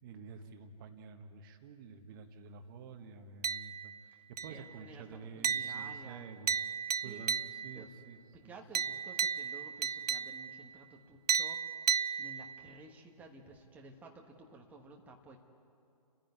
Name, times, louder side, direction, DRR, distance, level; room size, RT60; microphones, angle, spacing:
voice 1, 0.0-3.9 4.3-6.5 7.0-8.2 8.4-8.5, right 5 dB, 30° right, 7 dB, 1.5 m, -49 dB
sound 1, 3.4-4.0 4.4-4.8 5.4-7.9 8.7-10.7 11.3-12.7, right 7 dB, 75° right, 0.5 m, -34 dB
voice 2, 4.1-6.2 7.0-7.3 7.7-7.9 8.3-11.9 12.2-15.4, right 2 dB, 10° right, 1 dB, 1.3 m, -53 dB
29.5 x 10.5 x 9.5 m, 2.5 s
figure-of-eight pair, 140°, 21 cm